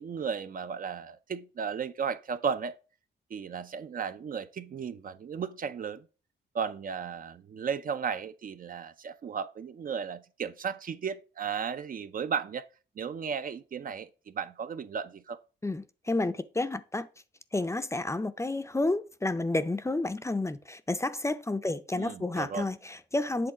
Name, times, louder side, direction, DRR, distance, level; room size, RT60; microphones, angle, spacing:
voice 1, 0.0-2.8 3.3-6.0 6.5-12.7 13.0-15.4 21.9-22.7, right 6 dB, 50° right, 0.5 m, -35 dB
voice 2, 15.6-17.1 17.5-23.5, left 2 dB, 15° left, 0.5 m, -30 dB
7.8 x 3.6 x 4.7 m
cardioid pair, 80°, 19 cm